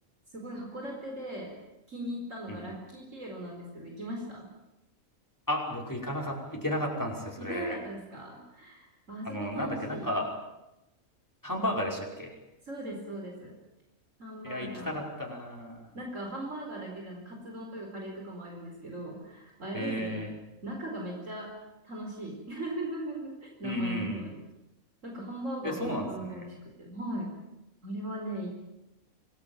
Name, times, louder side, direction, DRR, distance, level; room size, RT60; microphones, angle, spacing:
voice 1, 0.3-1.5 1.9-4.5 7.4-10.2 12.6-13.6 14.2-15.0 15.9-20.2 20.6-21.5 21.8-24.4 25.0-27.3 27.8-28.6, right 1 dB, 60° right, 0 dB, 4.9 m, -39 dB
voice 2, 5.5-7.8 9.2-10.3 11.4-12.3 14.4-15.9 19.7-20.3 23.6-24.3 25.6-26.4, left 1 dB, 15° left, -1 dB, 5.5 m, -33 dB
26.5 x 19.0 x 8.9 m, 0.93 s
omnidirectional pair, 1.5 m